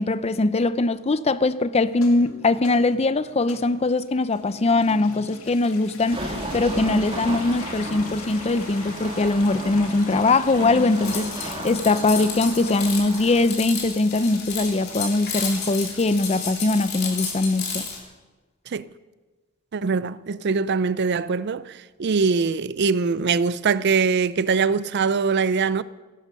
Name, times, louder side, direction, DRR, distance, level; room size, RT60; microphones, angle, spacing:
voice 1, 0.0-17.9, left 2 dB, 30° left, 0.5 m, -21 dB
sound 1, 1.9-17.0, left 3 dB, 75° left, 2.3 m, -43 dB
sound 2, 6.1-13.4, right 1 dB, 25° right, 2.2 m, -34 dB
sound 3, 10.9-18.0, left 5 dB, 50° left, 3.4 m, -32 dB
voice 2, 19.7-25.8, right 5 dB, 50° right, 0.4 m, -22 dB
17.5 x 11.5 x 6.4 m
head